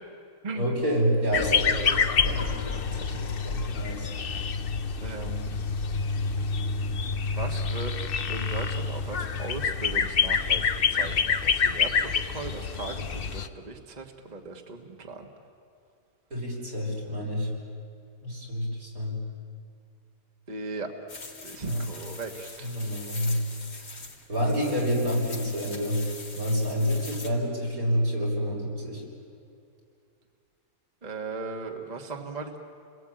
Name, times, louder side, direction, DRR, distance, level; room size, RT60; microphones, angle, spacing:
voice 1, 0.5-4.1 16.3-17.5 18.2-19.2 21.6-21.9 22.6-23.5 24.3-29.0, equal, 80° right, -3 dB, 6.8 m, -28 dB
sound 1, 1.3-13.5, left 5 dB, 45° left, 0.9 m, -27 dB
voice 2, 5.0-5.6 7.3-7.9 8.3-15.3 20.5-20.9 21.4-22.7 31.0-32.6, right 3 dB, 30° right, 3 dB, 1.7 m, -38 dB
sound 2, 21.1-27.3, left 3 dB, 75° left, 2.8 m, -43 dB
29.5 x 21.5 x 8.9 m, 2.5 s
omnidirectional pair, 1.5 m